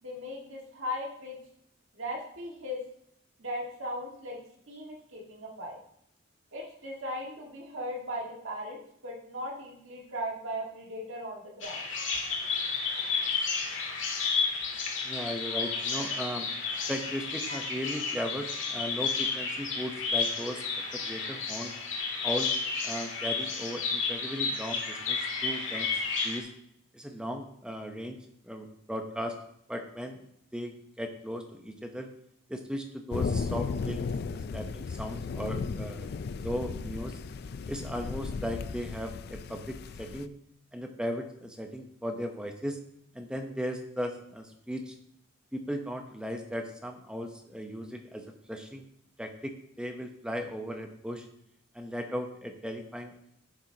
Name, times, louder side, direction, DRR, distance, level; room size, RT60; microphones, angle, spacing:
voice 1, 0.0-1.4 1.9-2.8 3.4-4.4 4.7-5.8 6.5-11.8, equal, 70° right, -2 dB, 1.8 m, -38 dB
Bird vocalization bird call bird song, 11.6-26.4, left 5 dB, 65° left, 1.7 m, -32 dB
voice 2, 15.0-16.5 16.9-20.6 20.9-21.7 22.2-22.5 22.8-25.9 26.2-26.5 26.9-28.2 28.4-29.3 29.7-30.2 30.5-32.1 32.5-34.0 34.3-37.1 37.7-40.3 40.7-42.8 43.1-44.9 45.5-48.8 49.2-51.3 51.7-53.1, equal, 5° right, 4 dB, 0.8 m, -37 dB
sound 1, 33.1-40.3, left 4 dB, 50° left, 0.3 m, -35 dB
11.0 x 7.6 x 2.8 m, 0.71 s
head